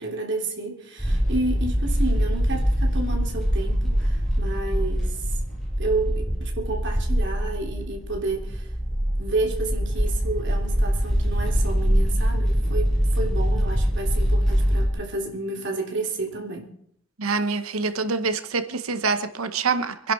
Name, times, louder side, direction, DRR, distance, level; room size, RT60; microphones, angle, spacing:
voice 1, 0.0-5.2 5.8-8.7 9.2-16.7, right 2 dB, 60° right, 2 dB, 3.3 m, -30 dB
sound 1, 1.0-14.9, equal, 5° left, 6.1 m, -23 dB
voice 2, 17.2-20.1, right 4 dB, 85° right, 10 dB, 1.0 m, -25 dB
25.5 x 11.0 x 4.4 m, 0.67 s
head